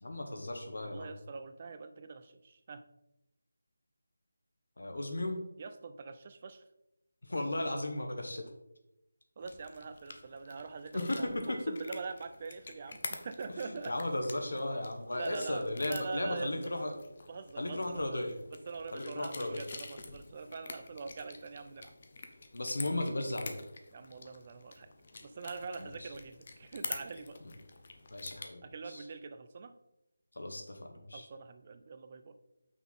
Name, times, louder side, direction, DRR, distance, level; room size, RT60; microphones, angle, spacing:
voice 1, 0.0-1.1 4.8-5.4 7.2-8.4 10.9-11.6 13.6-16.9 17.6-18.4 18.9-19.6 22.5-23.6 25.8-26.1 28.1-29.0 30.3-31.3, left 1 dB, 75° left, 4 dB, 1.5 m, -35 dB
voice 2, 0.8-2.8 5.6-6.6 9.4-13.9 15.1-16.5 17.3-18.2 18.7-21.9 23.9-24.9 25.2-27.4 28.6-29.7 31.1-32.4, right 4 dB, 30° right, 9 dB, 0.5 m, -44 dB
sound 1, 9.4-28.5, left 3 dB, 40° left, 0.8 m, -48 dB
5.8 x 4.2 x 5.4 m, 0.88 s
figure-of-eight pair, 170°, 0 cm